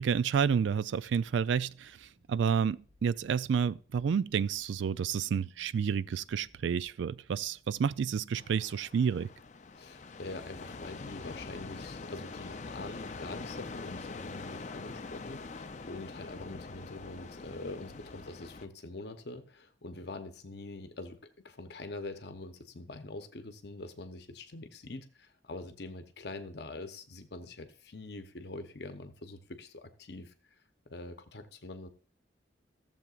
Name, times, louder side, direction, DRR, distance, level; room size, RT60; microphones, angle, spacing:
voice 1, 0.0-1.9 2.3-9.3, right 7 dB, 75° right, 0.3 m, -30 dB
sound 1, 0.9-8.0, equal, 55° right, 2.6 m, -65 dB
sound 2, 8.3-18.7, left 3 dB, 40° left, 0.5 m, -44 dB
voice 2, 9.8-21.2 21.4-30.3 30.9-31.9, left 2 dB, 60° left, 0.8 m, -44 dB
15.0 x 7.2 x 2.4 m
head